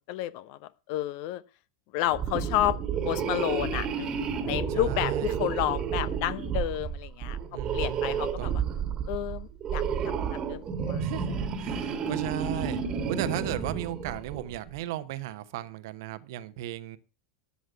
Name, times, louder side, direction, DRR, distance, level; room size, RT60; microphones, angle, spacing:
voice 1, 0.1-0.6 0.9-1.4 1.9-2.8 3.0-7.4 7.7-8.6 9.1-9.8 10.3-11.0, left 14 dB, 50° left, 16 dB, 0.9 m, -31 dB
sound 1, 2.1-14.6, right 7 dB, 30° right, 1.7 m, -31 dB
voice 2, 4.7-5.4 7.4-8.6 11.0-11.3 11.6-17.0, right 13 dB, 55° right, 13 dB, 1.0 m, -36 dB
13.0 x 6.3 x 7.1 m, 0.34 s
figure-of-eight pair, 85°, 2 cm